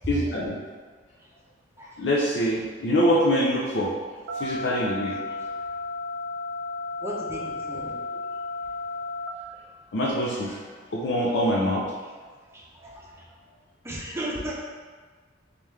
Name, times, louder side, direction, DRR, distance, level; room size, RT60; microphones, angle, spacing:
voice 1, 0.1-0.6 2.0-3.9 4.4-5.2 9.9-10.6 10.9-11.8, equal, 70° left, -4 dB, 0.5 m, -24 dB
sound 1, 4.3-9.3, left 2 dB, 70° right, 0.3 m, -33 dB
voice 2, 7.0-8.0 12.8-13.0 13.8-14.5, right 1 dB, 15° right, -4 dB, 0.6 m, -34 dB
3.4 x 3.4 x 3.2 m, 1.5 s
head